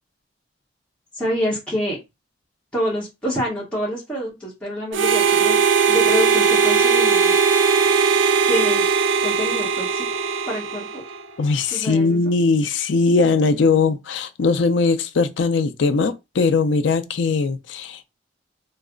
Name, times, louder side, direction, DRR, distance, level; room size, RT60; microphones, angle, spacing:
voice 1, 1.1-2.0 2.7-5.6 5.9-7.4 8.5-8.8 9.2-10.0 10.5-11.0 11.7-12.3, equal, 5° left, 1.0 m, -27 dB
Harmonica, 4.9-11.3, right 5 dB, 90° right, 0.4 m, -19 dB
voice 2, 11.4-18.1, left 4 dB, 80° left, 0.5 m, -20 dB
3.2 x 2.0 x 3.7 m
head